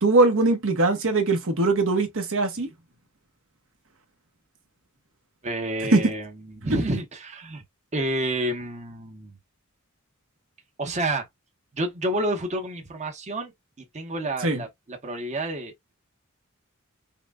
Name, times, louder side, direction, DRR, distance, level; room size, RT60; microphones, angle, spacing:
voice 1, 0.0-2.7 5.9-6.0 14.4-14.6, right 3 dB, 65° right, 1.1 m, -21 dB
voice 2, 5.4-7.6 7.9-9.4 10.8-11.3 11.7-13.5 13.9-15.9, right 1 dB, 35° right, 0.9 m, -29 dB
5.6 x 2.2 x 2.4 m
head